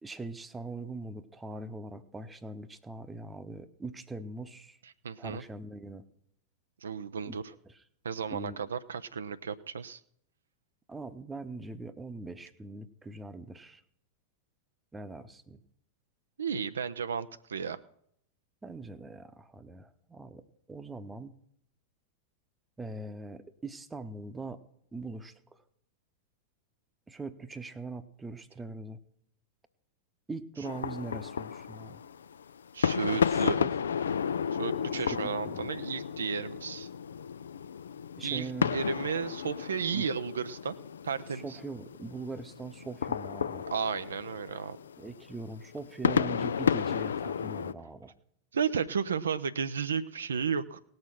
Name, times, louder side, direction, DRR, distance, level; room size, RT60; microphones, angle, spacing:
voice 1, 0.0-4.8 5.2-6.0 7.3-7.4 7.7-7.8 8.3-8.6 10.9-13.8 14.9-15.6 18.6-20.4 20.7-21.3 22.8-24.6 24.9-25.3 27.1-29.0 30.3-32.0 33.3-33.7 35.0-35.7 38.2-38.8 39.9-40.1 41.3-43.6 45.0-48.1, right 3 dB, 10° right, 12 dB, 0.9 m, -41 dB
voice 2, 4.8-5.4 6.8-7.4 8.0-10.0 16.4-17.8 32.7-33.6 34.5-36.9 38.2-40.7 41.0-41.6 43.7-44.8 48.5-50.8, right 6 dB, 70° right, 12 dB, 0.5 m, -33 dB
sound 1, 30.6-47.7, left 7 dB, 70° left, 0.4 m, -32 dB
18.0 x 6.5 x 5.7 m, 0.71 s
figure-of-eight pair, 90°, 0 cm